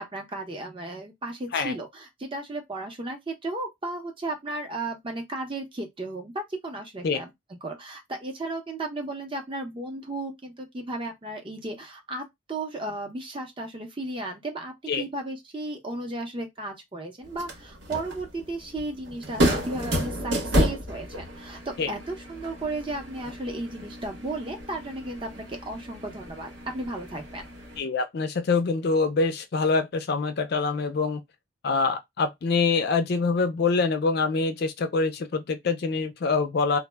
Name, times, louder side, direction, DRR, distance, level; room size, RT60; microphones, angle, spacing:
voice 1, 0.0-7.3 7.6-27.5, right 2 dB, 25° right, 0.6 m, -34 dB
sound 1, 17.2-27.8, equal, 70° right, 0.9 m, -31 dB
voice 2, 27.8-31.2 31.6-36.8, left 4 dB, 55° left, 0.4 m, -25 dB
2.1 x 2.0 x 3.2 m
head